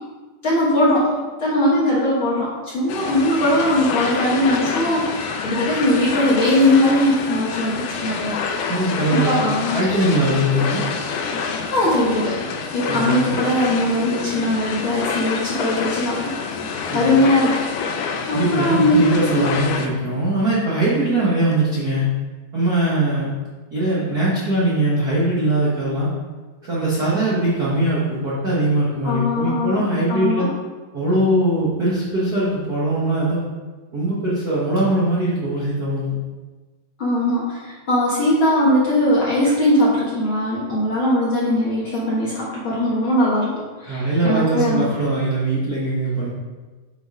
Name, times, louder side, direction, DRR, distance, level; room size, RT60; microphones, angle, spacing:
voice 1, 0.4-1.1 1.4-8.4 9.1-9.8 11.7-16.3 16.9-17.7 18.3-19.4 29.0-29.8 30.1-30.5 37.0-44.9, left 1 dB, 55° left, -7 dB, 1.5 m, -20 dB
sound 1, 2.9-19.9, left 5 dB, 90° left, 1.8 m, -27 dB
voice 2, 8.7-9.4 9.7-10.8 12.9-13.4 16.9-17.1 18.3-22.1 22.5-23.3 23.7-26.1 26.6-30.5 30.9-33.4 33.9-36.1 43.8-46.3, right 1 dB, 75° right, -8 dB, 0.8 m, -21 dB
7.9 x 4.2 x 5.1 m, 1.3 s
omnidirectional pair, 4.2 m